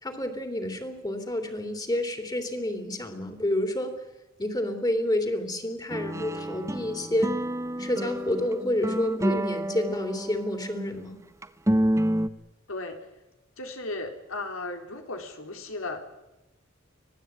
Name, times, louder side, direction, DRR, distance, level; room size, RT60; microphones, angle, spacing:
voice 1, 0.0-3.9 4.4-7.4 7.8-11.2, left 1 dB, 20° left, 7 dB, 3.3 m, -29 dB
sound 1, 5.9-10.9 11.4-12.3, right 1 dB, 15° right, 0.9 m, -29 dB
voice 2, 12.7-13.1 13.6-16.0, left 2 dB, 90° left, 5 dB, 3.9 m, -35 dB
25.5 x 18.0 x 9.0 m, 0.96 s
head